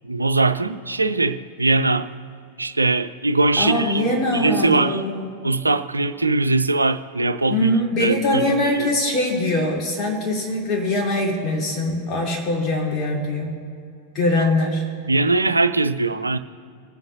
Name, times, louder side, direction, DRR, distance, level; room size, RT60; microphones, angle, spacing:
voice 1, 0.0-2.1 2.6-5.0 5.4-7.7 8.0-8.4 8.8-8.9 14.4-14.5 15.1-16.4, right 3 dB, 80° right, 11 dB, 0.4 m, -21 dB
voice 2, 3.6-5.3 7.5-13.6 14.1-14.8, left 1 dB, 30° left, -3 dB, 3.0 m, -22 dB
21.0 x 7.9 x 2.6 m, 2.4 s
figure-of-eight pair, 90°, 0 cm